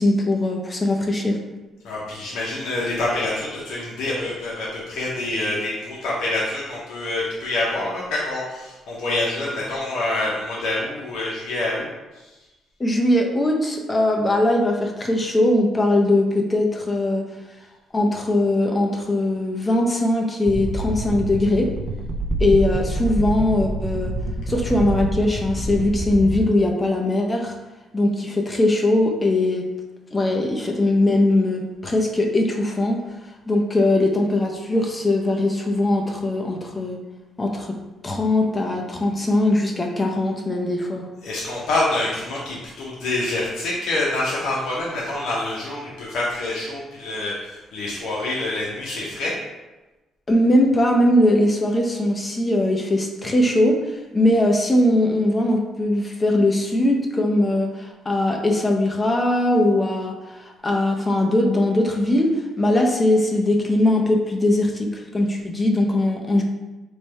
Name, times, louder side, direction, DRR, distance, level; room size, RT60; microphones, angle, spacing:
voice 1, 0.0-1.4 12.8-17.2 17.9-21.7 22.4-24.1 24.5-27.5 27.9-29.6 30.1-33.0 33.5-37.0 37.4-37.7 38.0-41.0 50.3-66.4, left 1 dB, 25° left, 1 dB, 0.6 m, -20 dB
voice 2, 1.8-11.9 41.2-49.3, left 2 dB, 80° left, -6 dB, 0.7 m, -26 dB
sound 1, 20.5-26.4, right 1 dB, 60° right, 0.4 m, -27 dB
3.2 x 2.2 x 4.1 m, 1.1 s
cardioid pair, 90°, 0 cm